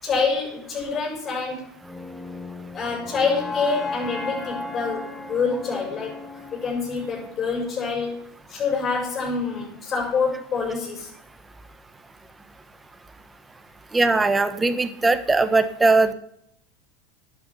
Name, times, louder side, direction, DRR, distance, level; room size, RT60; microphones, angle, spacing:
voice 1, 0.0-1.7 2.7-6.2 6.5-11.1, left 4 dB, 35° left, 0 dB, 5.4 m, -26 dB
sound 1, 1.8-7.9, left 3 dB, 15° left, 1.3 m, -35 dB
voice 2, 13.9-16.1, right 3 dB, 15° right, 11 dB, 1.3 m, -20 dB
11.5 x 9.3 x 5.5 m, 0.71 s
hypercardioid pair, 90°, 0 cm